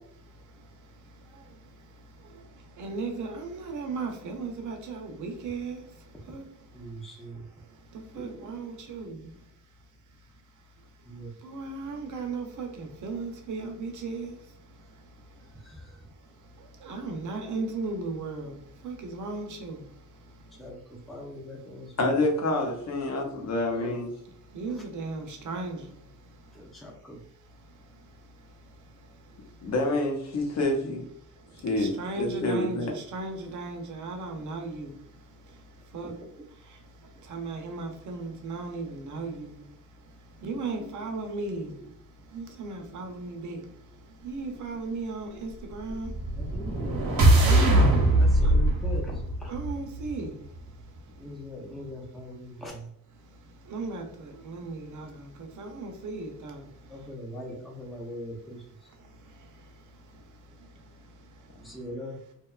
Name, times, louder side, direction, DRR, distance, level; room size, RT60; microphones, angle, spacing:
voice 1, 0.2-6.9 7.6-9.3 11.4-15.8 16.1-20.6 24.4-26.7 27.6-29.7 31.2-36.2 36.6-46.5 47.4-47.8 48.4-48.5 49.5-51.3 53.2-57.0 59.0-61.8, right 3 dB, 55° right, 3 dB, 0.5 m, -38 dB
voice 2, 6.7-7.5 8.1-8.3 11.1-11.3 15.5-16.0 20.6-22.2 23.7-24.0 24.7-24.8 26.5-27.2 36.0-36.3 39.3-39.7 40.7-40.9 41.8-41.9 46.4-47.0 47.3-49.5 51.2-52.9 56.9-58.9 61.6-62.2, equal, ahead, -2 dB, 0.4 m, -42 dB
voice 3, 22.0-24.1 29.6-31.0 31.6-31.9 32.2-32.9, left 2 dB, 50° left, 1 dB, 0.6 m, -27 dB
sound 1, 46.0-50.2, right 1 dB, 85° right, 0.8 m, -22 dB
2.7 x 2.2 x 2.3 m, 0.77 s
wide cardioid pair, 175°, 35 cm